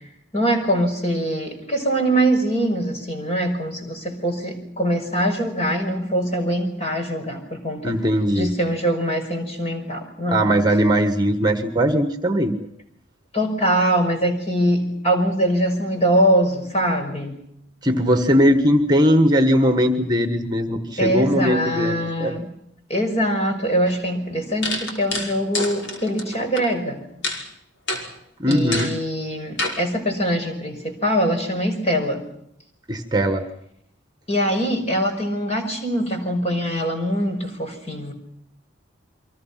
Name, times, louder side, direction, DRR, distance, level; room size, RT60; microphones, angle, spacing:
voice 1, 0.3-7.9 8.4-10.5 13.3-17.4 21.0-22.5 22.9-27.0 28.5-32.2 34.3-38.1, equal, 35° left, 4 dB, 5.6 m, -23 dB
voice 2, 7.8-8.5 10.3-12.7 17.8-22.3 28.4-28.9 32.9-33.4, equal, 20° right, 8 dB, 1.5 m, -19 dB
sound 1, 23.9-24.0 24.6-26.6 27.2-27.4 27.9-28.1 28.5-28.9 29.6-29.8, left 2 dB, 70° left, 5.7 m, -27 dB
29.5 x 24.0 x 5.9 m, 0.74 s
head